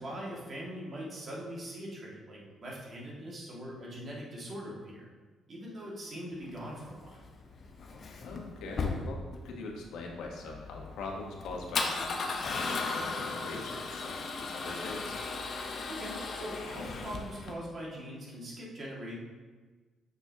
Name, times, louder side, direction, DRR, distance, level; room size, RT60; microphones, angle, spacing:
voice 1, 0.0-5.1 5.5-7.3 15.9-19.2, equal, 45° right, -4 dB, 2.0 m, -42 dB
Male speech man speaking / Car / Engine starting, 6.4-17.5, left 4 dB, 50° left, 0.8 m, -37 dB
voice 2, 8.2-15.2, left 3 dB, 80° left, 0 dB, 1.2 m, -42 dB
6.4 x 6.2 x 2.8 m, 1.3 s
cardioid pair, 90°, 0 cm